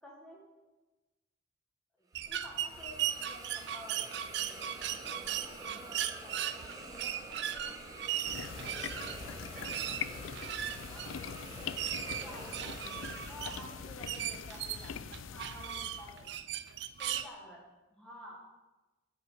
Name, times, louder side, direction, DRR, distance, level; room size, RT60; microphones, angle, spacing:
voice 1, 0.0-0.4 2.0-8.0 8.5-8.8 9.5-12.8 13.2-16.4 17.0-18.4, equal, 5° left, -3 dB, 1.5 m, -53 dB
Hiss, 2.1-14.3, right 2 dB, 20° right, 1.0 m, -48 dB
sound 1, 2.1-17.3, right 10 dB, 60° right, 0.4 m, -38 dB
sound 2, 8.2-16.3, left 7 dB, 85° left, 0.4 m, -43 dB
8.2 x 5.3 x 6.3 m, 1.1 s
head